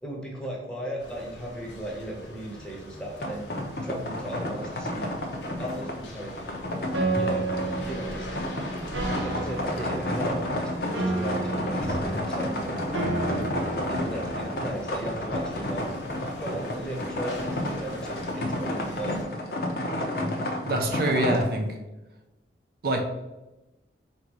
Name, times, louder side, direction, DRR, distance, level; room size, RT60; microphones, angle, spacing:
voice 1, 0.0-3.5 3.8-5.1 5.6-6.3 7.1-7.5 7.8-8.4 9.1-12.7 13.3-13.6 13.9-15.9 16.4-19.2, right 1 dB, 5° left, -2 dB, 0.9 m, -36 dB
sound 1, 1.0-19.2, equal, 80° left, 0.9 m, -42 dB
sound 2, 3.2-21.4, left 1 dB, 55° left, 0.7 m, -31 dB
Piano, 6.9-14.9, right 2 dB, 90° right, 0.7 m, -32 dB
voice 2, 20.6-21.8 22.8-23.0, right 1 dB, 55° right, 3 dB, 0.5 m, -25 dB
3.9 x 2.7 x 4.7 m, 1.0 s
head